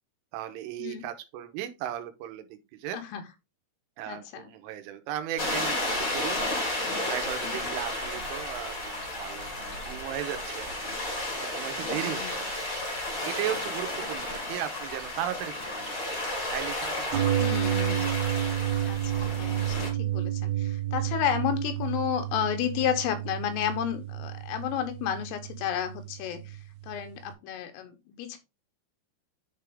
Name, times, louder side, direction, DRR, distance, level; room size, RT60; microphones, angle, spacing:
voice 1, 0.3-3.0 4.0-6.4 7.1-10.7 11.4-12.6 13.2-16.0 16.5-17.3, right 12 dB, 90° right, 8 dB, 3.3 m, -36 dB
voice 2, 4.1-4.5 7.4-7.7 11.8-12.3 14.3-14.4 17.4-18.1 18.9-26.6 26.8-28.4, left 9 dB, 85° left, 7 dB, 3.7 m, -32 dB
sound 1, 5.4-19.9, left 1 dB, 45° left, 1.0 m, -33 dB
sound 2, 17.1-27.0 27.3-27.4, right 12 dB, 70° right, 2.6 m, -30 dB
10.5 x 3.4 x 3.5 m, 0.25 s
omnidirectional pair, 5.7 m